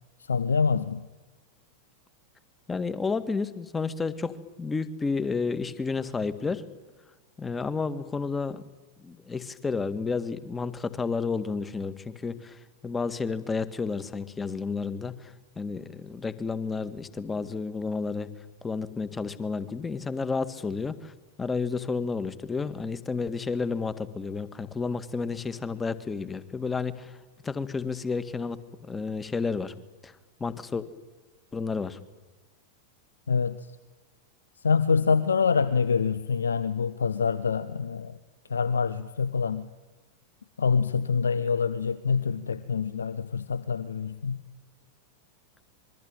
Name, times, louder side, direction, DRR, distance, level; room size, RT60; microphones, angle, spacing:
voice 1, 0.2-1.1 33.3-33.7 34.6-38.2 38.5-39.7 40.6-44.4, left 5 dB, 70° left, 16 dB, 0.9 m, -26 dB
voice 2, 2.7-6.6 7.4-8.6 9.0-12.6 12.8-15.3 15.6-18.3 18.6-21.1 21.4-27.1 27.4-29.7 30.0-30.1 30.4-30.8 31.5-32.0, left 4 dB, 15° left, 13 dB, 1.8 m, -31 dB
26.5 x 23.0 x 9.1 m, 1.3 s
figure-of-eight pair, 90°, 0 cm